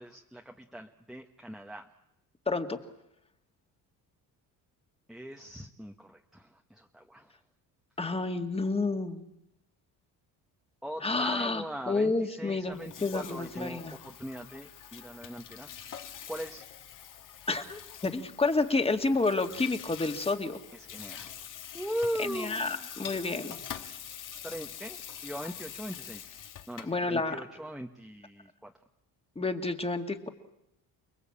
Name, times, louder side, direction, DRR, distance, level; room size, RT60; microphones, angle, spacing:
voice 1, 0.0-1.9 5.1-7.4 10.8-16.6 20.7-21.4 21.7-22.9 24.4-26.3 26.7-28.7, equal, ahead, 3 dB, 1.4 m, -40 dB
voice 2, 2.5-2.8 8.0-9.2 11.0-13.9 17.5-20.6 22.2-23.6 26.8-27.4 29.4-30.3, left 3 dB, 15° left, 7 dB, 2.2 m, -30 dB
Water tap faucet / Sink (filling or washing), 12.7-27.0, left 9 dB, 55° left, 2.1 m, -45 dB
29.5 x 21.0 x 8.7 m, 0.84 s
cardioid pair, 120°, 36 cm